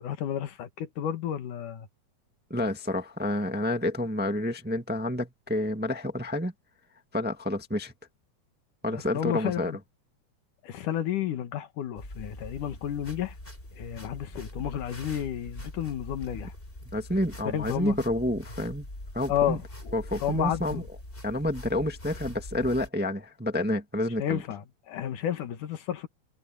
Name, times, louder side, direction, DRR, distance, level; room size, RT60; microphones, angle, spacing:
voice 1, 0.0-1.9 8.9-9.8 10.6-13.4 13.7-16.5 17.5-18.0 19.3-20.9 24.2-26.1, left 10 dB, 90° left, 3.2 m, -31 dB
voice 2, 2.5-6.5 7.1-7.9 8.8-9.7 16.9-18.9 19.1-19.6 19.9-20.8 21.2-24.4, left 1 dB, 5° right, 0.9 m, -29 dB
sound 1, 12.0-22.9, left 1 dB, 15° left, 5.8 m, -43 dB
omnidirectional pair, 3.5 m